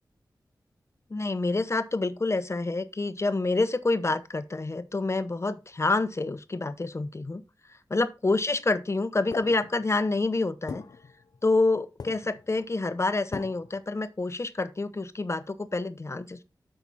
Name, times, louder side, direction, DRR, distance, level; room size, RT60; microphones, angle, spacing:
voice 1, 1.1-7.4 7.9-10.8 11.4-16.4, left 3 dB, 40° left, 0.9 m, -27 dB
sound 1, 9.3-10.1 10.7-11.7 12.0-12.6 13.3-13.8, left 5 dB, 65° left, 0.6 m, -40 dB
8.4 x 5.8 x 4.1 m
cardioid pair, 55°, 8 cm